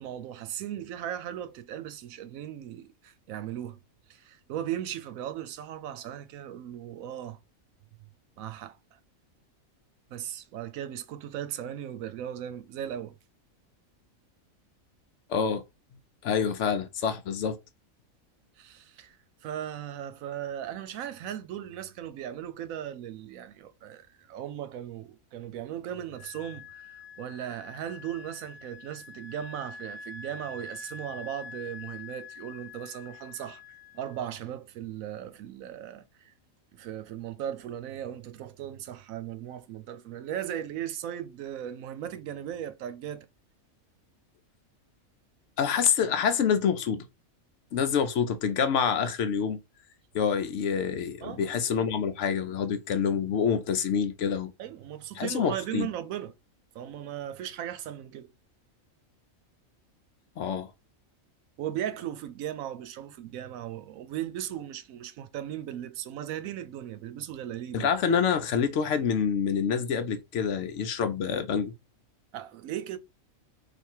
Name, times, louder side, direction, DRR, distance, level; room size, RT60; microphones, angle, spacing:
voice 1, 0.0-3.8 4.1-7.4 8.4-9.0 10.1-13.1 18.6-19.2 19.4-33.6 33.9-36.3 36.7-43.3 51.2-51.5 51.8-51.9 54.6-56.3 56.7-58.3 61.6-67.9 72.3-73.0, right 11 dB, 80° right, 1.0 m, -37 dB
voice 2, 15.3-15.6 16.2-17.6 45.6-47.0 47.7-49.6 50.1-54.5 55.2-55.9 60.4-60.7 67.7-71.7, left 7 dB, 65° left, 0.9 m, -27 dB
Wind instrument woodwind instrument, 26.1-34.4, left 4 dB, 40° left, 0.4 m, -46 dB
3.4 x 2.6 x 4.3 m
omnidirectional pair, 1.4 m